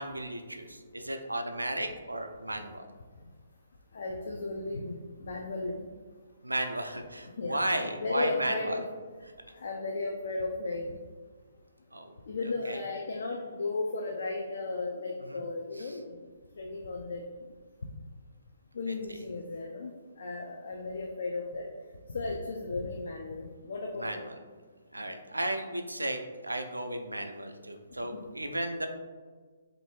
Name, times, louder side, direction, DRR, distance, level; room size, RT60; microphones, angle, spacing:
voice 1, 0.0-2.9 6.4-8.9 9.2-9.5 11.9-12.1 12.4-12.9 15.2-15.5 15.7-16.0 18.9-19.2 24.0-24.4 24.9-28.9, right 1 dB, 80° right, 6 dB, 0.3 m, -35 dB
voice 2, 3.9-5.9 7.4-8.8 9.6-10.9 12.3-16.2 16.6-17.3 18.7-21.7 22.1-24.3 25.0-25.1 28.1-28.2, left 3 dB, 55° left, 0 dB, 0.3 m, -35 dB
3.3 x 2.5 x 3.1 m, 1.5 s
figure-of-eight pair, 130°, 0 cm